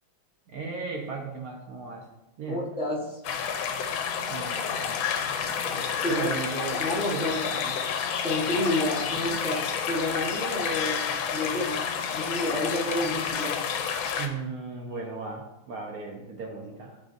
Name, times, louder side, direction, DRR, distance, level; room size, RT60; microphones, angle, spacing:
voice 1, 0.5-2.1 2.4-2.7 4.3-5.0 6.1-6.8 7.1-7.8 14.2-17.0, right 4 dB, 65° right, 1 dB, 0.9 m, -36 dB
voice 2, 2.5-3.2 5.6-6.3 6.7-7.3 8.2-13.6, left 1 dB, 5° right, -6 dB, 0.6 m, -30 dB
sound 1, 3.2-14.3, left 7 dB, 80° left, 1.4 m, -30 dB
10.5 x 3.8 x 2.5 m, 0.97 s
omnidirectional pair, 2.2 m